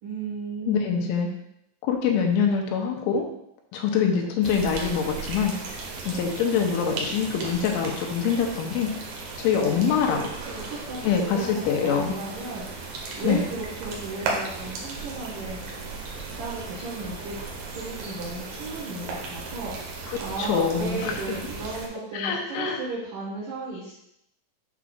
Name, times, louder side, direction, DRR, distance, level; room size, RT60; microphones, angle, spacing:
voice 1, 0.0-1.3 9.5-15.6 16.4-23.9, right 3 dB, 60° right, -7 dB, 2.3 m, -35 dB
voice 2, 0.7-1.3 1.8-3.3 3.7-5.5 6.1-8.9 9.4-10.3 11.0-12.2 13.2-13.4 20.1-21.1 22.1-22.8, left 7 dB, 85° left, 2 dB, 3.1 m, -24 dB
sound 1, 4.4-21.9, right 3 dB, 75° right, 2.0 m, -36 dB
8.4 x 6.0 x 2.4 m, 0.77 s
omnidirectional pair, 5.6 m